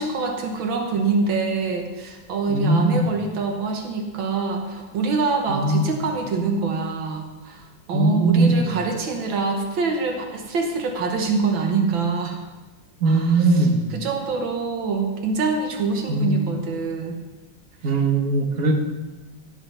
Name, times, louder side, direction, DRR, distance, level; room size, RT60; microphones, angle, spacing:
voice 1, 0.0-12.4 13.1-17.2 17.8-17.9, right 4 dB, 85° right, 3 dB, 1.9 m, -25 dB
voice 2, 2.5-3.0 5.5-5.8 7.9-8.7 13.0-13.8 16.1-16.4 17.8-18.7, right 2 dB, 50° right, 3 dB, 1.6 m, -20 dB
16.5 x 5.7 x 5.5 m, 1.2 s
omnidirectional pair, 2.1 m